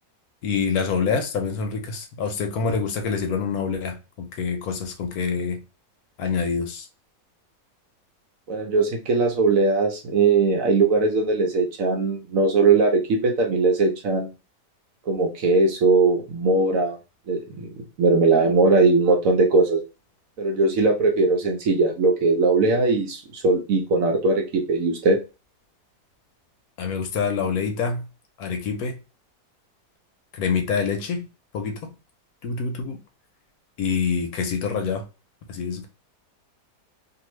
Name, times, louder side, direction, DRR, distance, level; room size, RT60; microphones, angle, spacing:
voice 1, 0.4-5.6 6.2-6.9 26.8-28.0 28.4-29.0 30.3-31.3 31.5-31.8 32.4-33.0 33.8-35.0 35.5-35.9, left 5 dB, 70° left, 1.0 m, -26 dB
voice 2, 8.5-14.3 15.1-17.0 17.3-17.7 18.0-19.8 20.4-25.2, right 3 dB, 65° right, 0.9 m, -20 dB
2.6 x 2.5 x 3.0 m
omnidirectional pair, 1.8 m